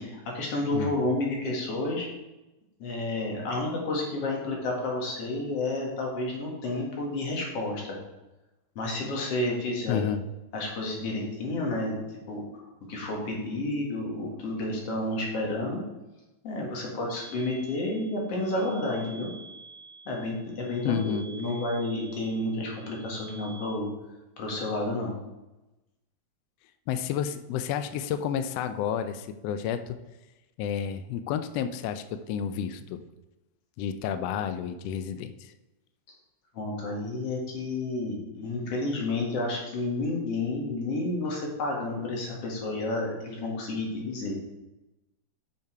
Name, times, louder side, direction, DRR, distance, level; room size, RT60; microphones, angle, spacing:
voice 1, 0.0-2.1 2.8-8.0 8.8-10.0 10.5-12.4 12.9-15.8 16.4-19.3 20.1-23.9 24.4-25.2 36.5-44.3, left 2 dB, 55° left, -1 dB, 2.7 m, -30 dB
voice 2, 9.9-10.2 20.8-21.2 26.9-30.0 30.6-33.0 33.8-35.5, left 8 dB, 90° left, 10 dB, 1.4 m, -30 dB
sound 1, 17.1-23.7, right 4 dB, 35° left, 2.2 m, -49 dB
8.7 x 5.7 x 4.6 m, 1.0 s
omnidirectional pair, 3.4 m